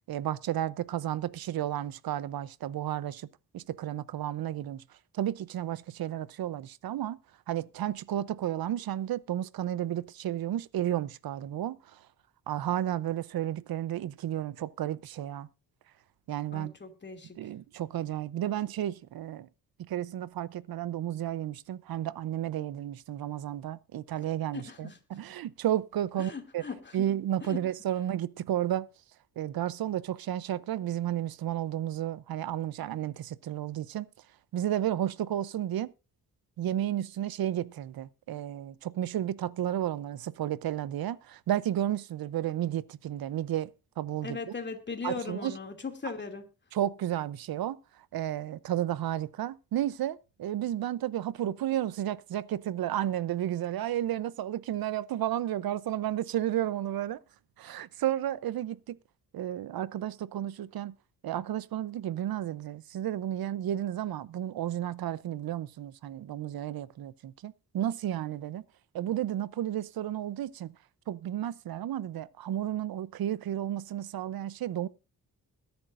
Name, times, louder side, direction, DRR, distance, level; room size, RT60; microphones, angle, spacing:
voice 1, 0.1-3.3 3.5-4.8 5.1-7.2 7.5-12.0 12.5-15.5 16.3-16.7 17.4-19.5 19.8-26.6 26.9-28.9 29.4-34.1 34.5-35.9 36.6-43.7 44.0-44.5 45.0-45.5 46.7-47.8 48.1-57.2 57.6-59.0 59.3-60.9 61.2-68.6 68.9-70.7 71.1-74.9, right 12 dB, 75° right, 0.7 m, -32 dB
voice 2, 16.5-17.5 24.5-25.0 26.1-27.1 27.4-27.6 44.2-46.5, left 4 dB, 30° left, 2.6 m, -39 dB
21.5 x 10.5 x 2.6 m
cardioid pair, 105°, 36 cm